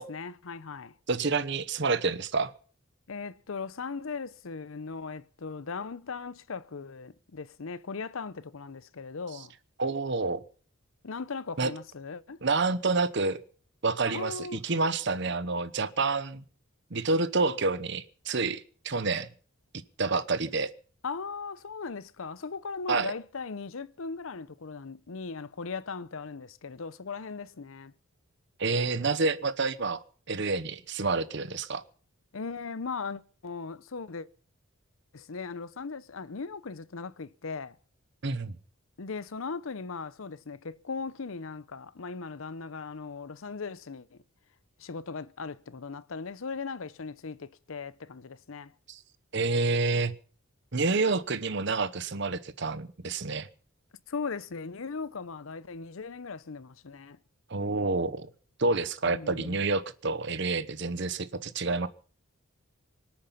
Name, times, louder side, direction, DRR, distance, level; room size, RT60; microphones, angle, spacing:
voice 1, 0.0-0.9 3.1-9.5 11.0-12.4 14.1-14.6 21.0-27.9 32.3-34.3 35.1-37.8 39.0-44.2 44.8-48.7 54.1-57.2 59.1-59.6, left 4 dB, 70° left, 0.7 m, -38 dB
voice 2, 1.1-2.5 9.8-10.4 11.6-11.7 12.4-13.4 13.8-16.4 16.9-19.3 19.7-20.7 22.9-23.1 28.6-31.8 38.2-38.6 48.9-49.0 49.3-50.2 50.7-53.5 57.5-58.3 58.6-61.9, right 3 dB, 55° right, 1.0 m, -28 dB
25.0 x 8.7 x 5.7 m
head